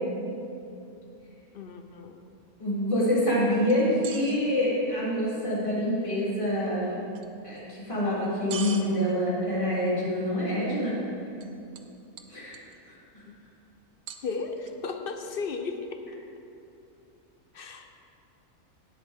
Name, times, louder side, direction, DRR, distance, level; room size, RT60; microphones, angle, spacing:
voice 1, 1.5-2.2 13.3-13.4 14.2-16.0 17.5-17.9, left 4 dB, 50° left, 6 dB, 0.7 m, -35 dB
voice 2, 2.6-6.9 7.4-11.0 12.3-12.5, equal, 20° left, -9 dB, 3.3 m, -26 dB
sound 1, 3.7-4.4 7.1-7.3 8.5-8.8 11.4-11.5 11.8-11.9 12.2-12.8 14.1-14.7, right 8 dB, 75° right, 1.1 m, -39 dB
17.0 x 8.2 x 3.7 m, 2.6 s
omnidirectional pair, 1.6 m